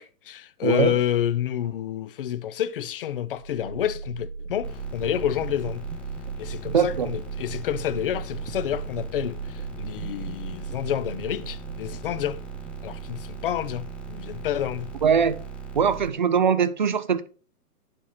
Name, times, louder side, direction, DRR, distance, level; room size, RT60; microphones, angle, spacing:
voice 1, 0.0-5.9 6.4-12.4 12.8-14.9, left 11 dB, 35° left, 0.6 m, -29 dB
voice 2, 0.6-1.0 6.7-7.1 15.0-15.4 15.7-17.3, right 7 dB, 30° right, 0.4 m, -22 dB
sound 1, 3.3-15.2, right 4 dB, 65° right, 1.0 m, -38 dB
sound 2, 4.6-16.1, right 5 dB, ahead, 1.3 m, -38 dB
10.5 x 7.7 x 4.2 m
hypercardioid pair, 150°, 48 cm